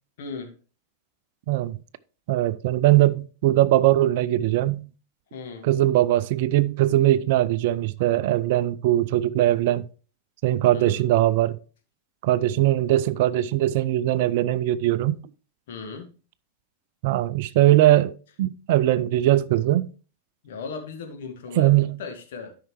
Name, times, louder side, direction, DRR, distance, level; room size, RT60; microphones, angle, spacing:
voice 1, 0.2-0.5 5.3-5.7 10.7-11.0 15.7-16.1 20.4-21.7 22.0-22.6, left 5 dB, 55° left, 1.7 m, -37 dB
voice 2, 1.5-1.8 2.3-4.9 5.6-9.8 10.4-11.6 12.2-15.2 17.0-18.1 18.4-19.9 21.6-22.0, right 14 dB, 50° right, 0.4 m, -20 dB
12.0 x 5.7 x 3.1 m
figure-of-eight pair, 90°, 0 cm